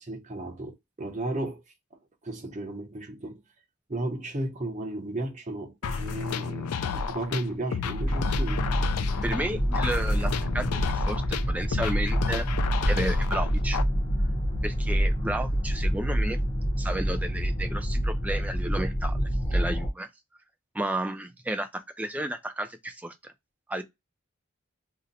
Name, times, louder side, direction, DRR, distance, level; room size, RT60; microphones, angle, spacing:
voice 1, 0.0-1.6 2.2-3.4 3.9-8.6 9.0-9.1, right 1 dB, 30° right, 0.7 m, -34 dB
sound 1, 5.8-13.8, left 6 dB, 85° left, 0.4 m, -32 dB
sound 2, 8.0-19.9, equal, 20° left, 0.7 m, -27 dB
voice 2, 9.2-12.5 12.9-13.8 14.6-16.4 16.8-20.1 20.7-23.3 23.7-23.8, right 1 dB, 5° right, 0.3 m, -32 dB
2.8 x 2.1 x 3.8 m
head